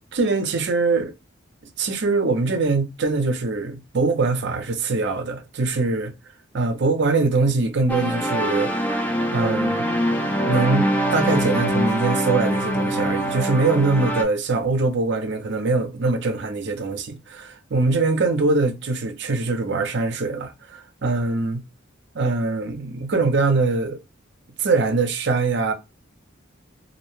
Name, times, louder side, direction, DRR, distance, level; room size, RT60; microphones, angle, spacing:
voice 1, 0.1-1.1 1.8-6.1 6.5-8.7 9.3-9.8 10.4-21.6 22.1-24.0 24.6-25.7, right 3 dB, 60° right, 0.6 m, -22 dB
sound 1, 7.9-14.2, equal, 10° left, 0.4 m, -23 dB
2.6 x 2.1 x 3.0 m
head